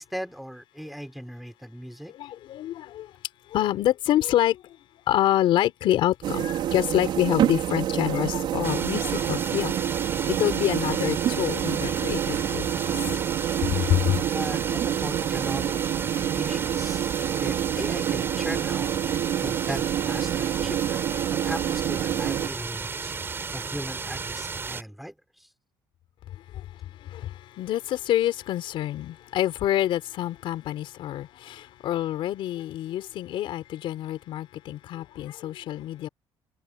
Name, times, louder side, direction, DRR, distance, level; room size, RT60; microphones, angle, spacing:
voice 1, 0.0-2.2 14.3-15.7 16.0-17.1 17.4-18.9 19.4-21.0 21.4-25.5, equal, ahead, 4.9 m, -37 dB
voice 2, 2.1-3.1 3.5-4.8 5.1-9.9 10.3-12.7 12.9-13.0 13.6-14.2 26.5-26.7 27.0-36.1, left 13 dB, 75° left, 4.1 m, -27 dB
sound 1, 6.2-22.5, right 11 dB, 65° right, 5.2 m, -27 dB
sound 2, 8.6-24.8, right 4 dB, 25° right, 5.5 m, -34 dB
cardioid pair, 140°, 9 cm